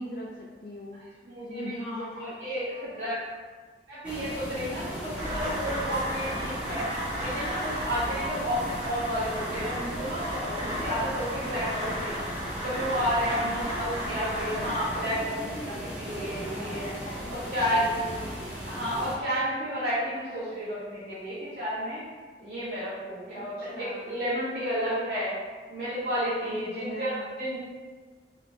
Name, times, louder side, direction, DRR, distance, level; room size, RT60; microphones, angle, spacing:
voice 1, 0.0-2.4 2.7-3.1 13.3-14.7 17.1-18.3 23.3-24.2 26.3-27.3, equal, 50° left, -4 dB, 0.4 m, -40 dB
voice 2, 0.9-3.2 3.9-6.9 7.2-12.3 12.6-17.0 17.3-17.9 18.7-22.0 22.4-25.4 25.7-27.6, equal, 50° right, -12 dB, 1.0 m, -31 dB
sound 1, 4.0-19.2, equal, 5° right, 0.6 m, -37 dB
sound 2, 5.2-14.9, equal, 25° right, 1.0 m, -35 dB
3.4 x 2.6 x 3.0 m, 1.4 s
head